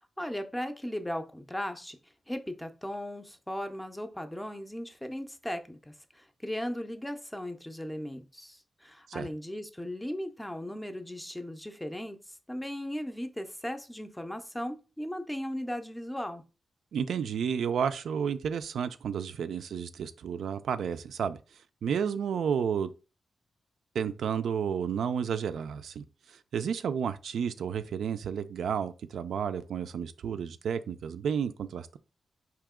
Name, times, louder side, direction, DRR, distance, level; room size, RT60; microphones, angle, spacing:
voice 1, 0.2-2.0 2.3-16.4, equal, 5° left, 0.4 m, -37 dB
voice 2, 16.9-21.4 21.8-22.9 23.9-32.0, right 7 dB, 85° right, 0.3 m, -31 dB
4.8 x 2.8 x 3.6 m
wide cardioid pair, 160°, 0 cm